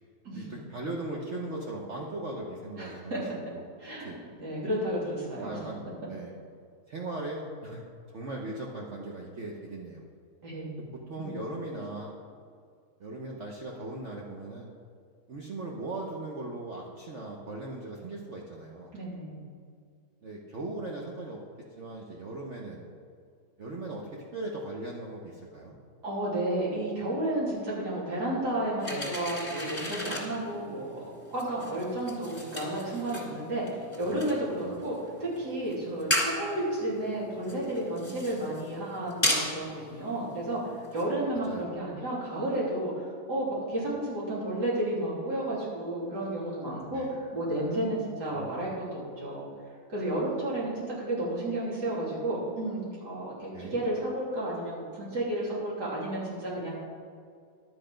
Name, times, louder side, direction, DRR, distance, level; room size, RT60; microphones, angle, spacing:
voice 1, 0.3-3.2 3.5-3.7 4.0-4.2 5.4-6.3 6.9-7.8 8.1-10.0 10.9-12.1 13.0-14.7 15.3-18.9 20.2-21.4 21.7-22.8 23.6-25.7 34.0-34.3 34.6-34.8 39.6-39.8 41.5-41.8 46.9-47.1 48.3-48.7 53.5-53.8, right 2 dB, 50° right, -3 dB, 1.2 m, -39 dB
voice 2, 2.8-3.2 3.8-5.6 10.4-10.9 11.2-11.3 18.9-19.5 26.0-31.0 31.3-33.6 34.0-40.6 40.9-49.5 49.9-56.7, right 1 dB, 85° right, -6 dB, 3.6 m, -32 dB
sound 1, 28.8-41.1, left 1 dB, 15° left, 2.2 m, -36 dB
11.0 x 8.2 x 5.2 m, 2.2 s
omnidirectional pair, 1.7 m